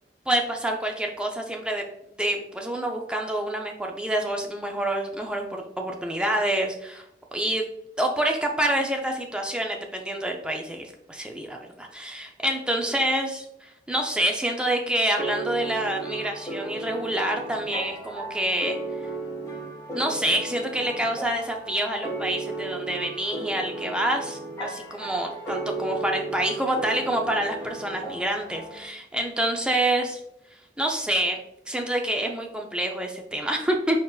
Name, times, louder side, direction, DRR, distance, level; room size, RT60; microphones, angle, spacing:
voice 1, 0.3-1.8 2.2-7.0 7.3-7.7 8.0-18.8 19.9-24.2 24.9-30.2 30.8-31.4 31.7-34.0, right 1 dB, 5° right, 2 dB, 0.4 m, -27 dB
sound 1, 15.2-28.9, right 2 dB, 20° left, 1.1 m, -35 dB
4.4 x 4.4 x 2.4 m, 0.80 s
head